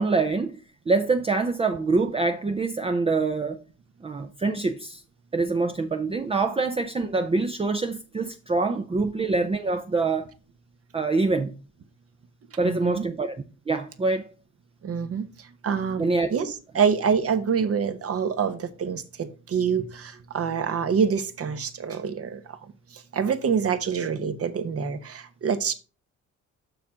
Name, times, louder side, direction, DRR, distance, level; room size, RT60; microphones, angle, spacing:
voice 1, 0.0-3.6 4.0-5.0 5.3-10.3 10.9-11.5 12.6-14.3 16.0-16.3, right 3 dB, 20° right, 0.6 m, -25 dB
voice 2, 12.6-13.0 14.8-16.0 16.3-16.5 16.7-22.6 22.9-25.7, right 6 dB, 50° right, 1.1 m, -26 dB
6.9 x 6.0 x 3.7 m
cardioid pair, 90°, 30 cm